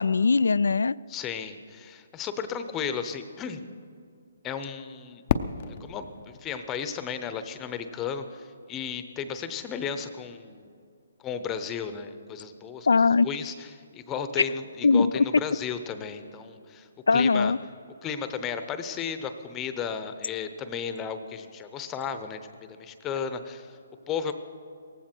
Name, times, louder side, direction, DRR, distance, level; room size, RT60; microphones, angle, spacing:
voice 1, 0.0-1.0 12.9-13.3 14.8-15.3 17.1-17.6, left 4 dB, 80° left, 20 dB, 0.3 m, -20 dB
voice 2, 1.1-3.6 4.4-5.2 5.8-10.7 11.2-17.5 18.0-23.8 24.1-24.3, left 7 dB, 20° left, 10 dB, 0.8 m, -34 dB
Fireworks, 5.3-8.2, left 8 dB, 45° left, 0.6 m, -33 dB
18.0 x 15.5 x 4.5 m, 2.4 s
hypercardioid pair, 145°, 0 cm